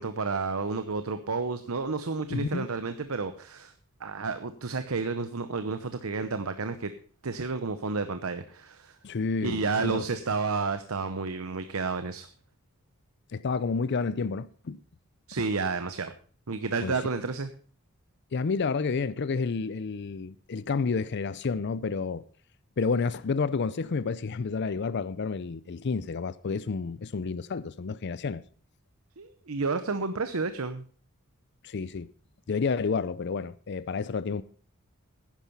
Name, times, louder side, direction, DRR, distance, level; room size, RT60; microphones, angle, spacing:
voice 1, 0.0-3.7 4.0-6.9 7.2-9.0 9.4-12.3 15.3-16.1 16.5-17.5 29.2-30.8, right 4 dB, 80° right, 0.9 m, -31 dB
voice 2, 2.3-2.7 9.0-10.0 13.3-14.8 16.8-16.9 18.3-22.2 22.8-28.4 31.6-32.1 32.5-34.4, left 4 dB, 55° left, 0.5 m, -30 dB
10.5 x 10.5 x 5.5 m
head